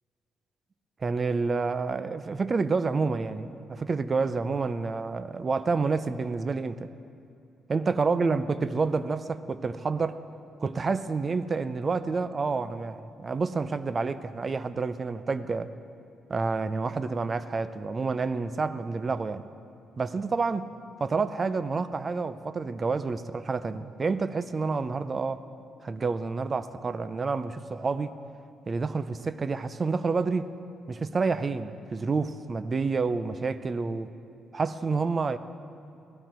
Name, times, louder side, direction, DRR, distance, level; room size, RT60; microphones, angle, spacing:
voice 1, 1.0-6.9 7.7-10.2 10.6-15.7 16.3-19.5 20.0-20.7 21.0-25.4 25.8-28.1 28.7-30.5 30.9-34.1 34.5-35.4, right 4 dB, 35° right, 13 dB, 0.6 m, -29 dB
17.0 x 14.0 x 4.5 m, 2.6 s
cardioid pair, 90°, 0 cm